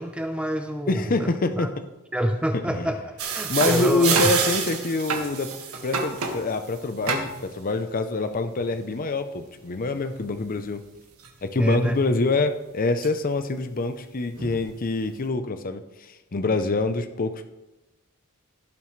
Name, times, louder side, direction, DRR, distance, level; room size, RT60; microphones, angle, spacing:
voice 1, 0.0-1.3 1.6-1.7 2.1-4.3 11.6-12.0, equal, 5° right, 6 dB, 0.5 m, -27 dB
voice 2, 0.9-1.7 2.7-2.9 3.5-5.5 5.8-10.8 11.4-17.4, left 3 dB, 40° left, 9 dB, 0.6 m, -25 dB
sound 1, 3.2-6.4 7.1-7.5 11.2-11.3 12.1-12.2 13.0-13.1 14.4-14.6, right 5 dB, 85° right, 1.7 m, -27 dB
16.5 x 7.4 x 3.2 m, 1.0 s
head